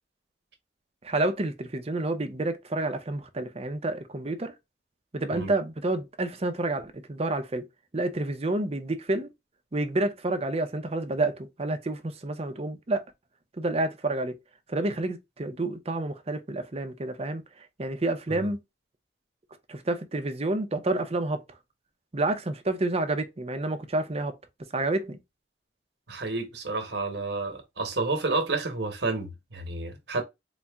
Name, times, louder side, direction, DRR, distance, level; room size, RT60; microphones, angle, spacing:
voice 1, 1.0-4.5 5.1-7.7 7.9-9.3 9.7-13.0 13.6-14.4 14.7-17.4 17.8-18.6 19.7-21.4 22.1-24.4 24.7-25.2, right 2 dB, 35° right, 0.7 m, -29 dB
voice 2, 26.1-30.2, right 3 dB, 70° right, 1.2 m, -30 dB
4.2 x 2.2 x 3.5 m
head